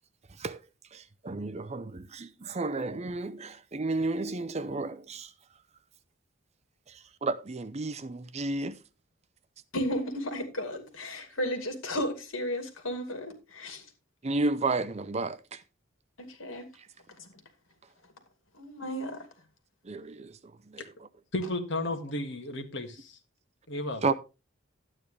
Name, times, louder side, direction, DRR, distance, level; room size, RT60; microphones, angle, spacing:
voice 1, 0.9-5.3 6.9-8.8 14.2-15.6 19.8-20.4 20.7-20.8 24.0-24.1, right 3 dB, 35° right, 0.6 m, -32 dB
voice 2, 9.7-13.8 16.2-16.7 18.6-19.2, equal, 85° left, 2.6 m, -34 dB
voice 3, 21.3-23.2 23.7-24.0, left 1 dB, 60° left, 1.8 m, -33 dB
12.0 x 9.1 x 3.3 m
head